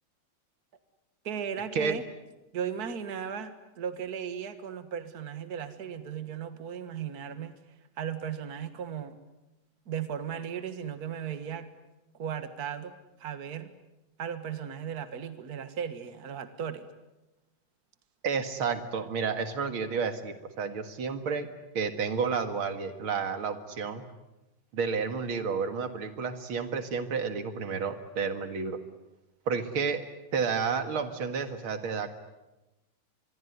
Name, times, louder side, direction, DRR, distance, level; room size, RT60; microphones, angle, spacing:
voice 1, 1.2-2.0 2.5-7.6 8.0-9.2 9.9-11.7 12.2-13.7 14.2-16.9, right 8 dB, 50° right, 10 dB, 2.0 m, -36 dB
voice 2, 18.2-21.5 21.7-24.0 24.7-28.8 29.5-30.0 30.3-32.1, right 5 dB, 80° right, 9 dB, 2.6 m, -31 dB
25.5 x 22.0 x 9.6 m, 1.0 s
omnidirectional pair, 2.3 m